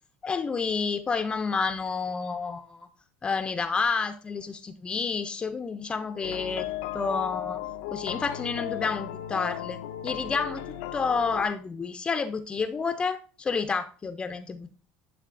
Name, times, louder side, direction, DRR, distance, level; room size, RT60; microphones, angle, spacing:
voice 1, 0.2-2.9 3.2-6.7 6.9-9.8 10.0-10.6 10.9-14.7, left 5 dB, 20° left, 0.4 m, -29 dB
sound 1, 6.2-11.5, left 12 dB, 90° left, 0.5 m, -36 dB
11.0 x 3.7 x 2.5 m
cardioid pair, 125°, 4 cm